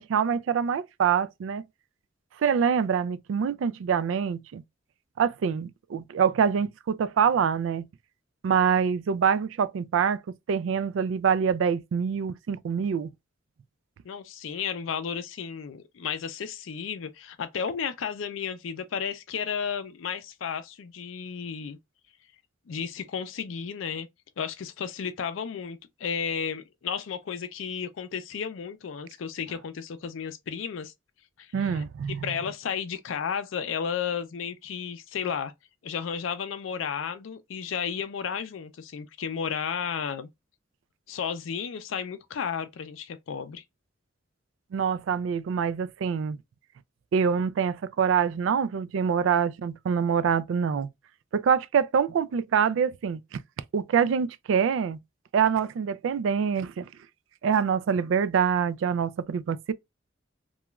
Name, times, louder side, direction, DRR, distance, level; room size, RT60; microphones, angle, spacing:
voice 1, 0.0-1.6 2.4-4.6 5.2-7.9 8.4-10.2 10.5-13.1 31.5-32.2 44.7-46.4 47.1-50.9 51.3-53.4 53.7-55.0 55.3-56.9 57.4-59.7, right 7 dB, 75° right, 0.3 m, -25 dB
voice 2, 14.0-21.8 22.7-24.1 24.4-30.9 31.4-35.5 35.8-40.3 41.1-43.6, left 7 dB, 85° left, 0.4 m, -33 dB
2.9 x 2.3 x 2.3 m
head